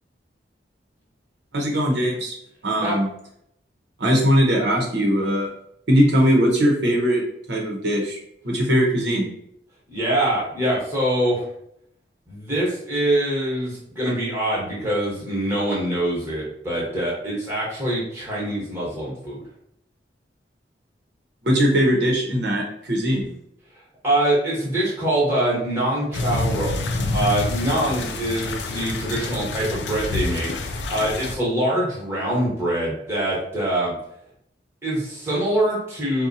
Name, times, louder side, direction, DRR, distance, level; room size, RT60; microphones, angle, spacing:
voice 1, 1.5-2.3 2.6-3.1 4.0-5.5 5.9-7.2 7.5-8.2 8.4-9.3 21.4-23.3, equal, 75° right, -2 dB, 0.8 m, -20 dB
voice 2, 9.9-11.5 12.3-19.4 24.0-26.7 27.1-33.9 34.8-36.3, right 1 dB, 15° right, -6 dB, 1.1 m, -24 dB
sound 1, 26.1-31.4, left 2 dB, 80° left, 0.4 m, -27 dB
4.0 x 2.2 x 2.6 m, 0.74 s
head